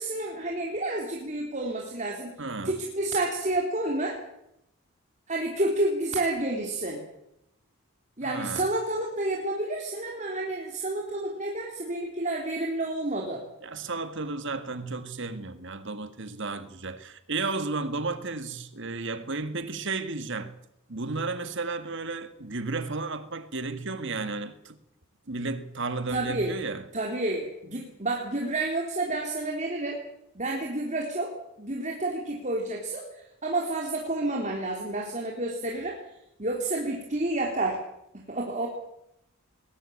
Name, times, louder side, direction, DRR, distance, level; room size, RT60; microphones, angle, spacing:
voice 1, 0.0-4.2 5.3-7.0 8.2-13.4 26.1-26.6 26.9-30.0 30.4-36.0 36.4-37.8 38.3-38.7, right 2 dB, 35° right, 3.6 m, -30 dB
voice 2, 2.4-2.8 8.2-8.7 13.6-20.5 20.9-24.7 25.3-26.9, right 3 dB, 55° right, 2.0 m, -33 dB
21.0 x 19.0 x 8.7 m
head